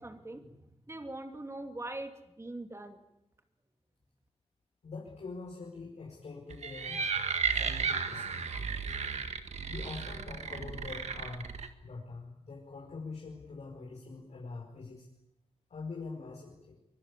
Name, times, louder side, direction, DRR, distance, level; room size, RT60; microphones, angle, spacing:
voice 1, 0.0-3.0, right 2 dB, 25° right, 6 dB, 2.7 m, -42 dB
voice 2, 4.8-7.1 7.5-8.7 9.3-11.5 11.8-15.1 15.7-16.8, left 4 dB, 75° left, -2 dB, 5.0 m, -44 dB
sound 1, 6.5-11.7, right 5 dB, 80° right, 1.9 m, -34 dB
24.0 x 22.0 x 8.4 m, 0.88 s
wide cardioid pair, 115°, 11 cm